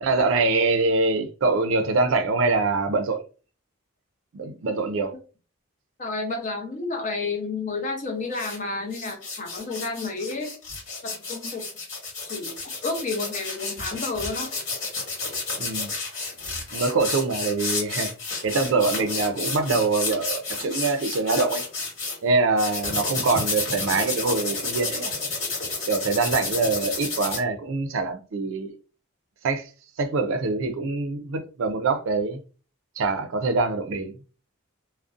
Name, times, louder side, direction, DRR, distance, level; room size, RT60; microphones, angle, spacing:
voice 1, 0.0-3.2 4.3-5.1 15.6-15.9 16.7-18.1 18.4-21.6 22.2-25.1 25.9-28.7 29.4-29.7 30.0-32.4 33.0-34.1, right 3 dB, 70° right, 0.4 m, -24 dB
voice 2, 6.0-10.5 11.0-11.6 12.2-14.5 14.8-14.9, left 3 dB, 35° left, 0.6 m, -31 dB
sound 1, 8.3-8.6 8.9-22.2 22.6-27.4, left 3 dB, 50° left, 1.3 m, -31 dB
2.4 x 2.0 x 2.4 m
head